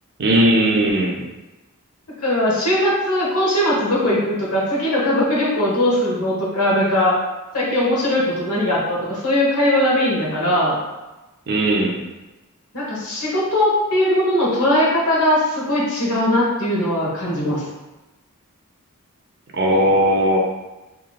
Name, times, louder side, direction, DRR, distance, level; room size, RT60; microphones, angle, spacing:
voice 1, 0.2-1.2 11.5-12.0 19.5-20.4, right 1 dB, 50° right, 0 dB, 0.5 m, -17 dB
voice 2, 2.2-7.1 7.5-10.8 12.7-17.6, left 1 dB, 80° left, -5 dB, 1.0 m, -19 dB
3.0 x 2.8 x 2.3 m, 1.1 s
head